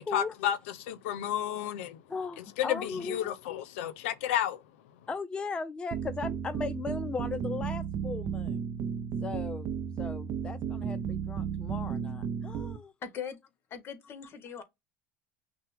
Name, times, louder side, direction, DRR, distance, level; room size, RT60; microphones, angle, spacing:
voice 1, 0.0-2.0 2.6-4.6, left 11 dB, 90° left, 0.5 m, -32 dB
voice 2, 2.1-3.4 5.1-8.7 9.2-12.9, left 4 dB, 15° left, 0.4 m, -37 dB
sound 1, 5.9-12.8, right 7 dB, 40° right, 0.5 m, -34 dB
voice 3, 13.0-13.4 13.7-14.6, left 7 dB, 35° left, 1.2 m, -40 dB
5.7 x 2.1 x 3.3 m
supercardioid pair, 140°, 7 cm